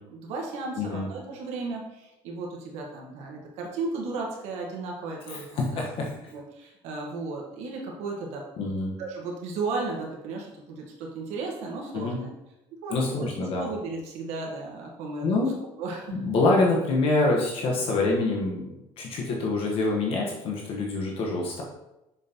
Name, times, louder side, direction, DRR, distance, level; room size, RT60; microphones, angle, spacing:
voice 1, 0.1-5.9 6.3-8.4 9.0-12.3 12.8-15.4 15.8-16.2, right 3 dB, 75° right, -1 dB, 1.4 m, -35 dB
voice 2, 0.8-1.1 5.3-6.1 8.6-8.9 11.9-12.2 12.9-13.6 15.2-15.5 16.1-18.7 19.0-21.6, left 2 dB, 55° left, -1 dB, 1.2 m, -26 dB
7.1 x 6.4 x 2.9 m, 0.93 s
cardioid pair, 140°, 11 cm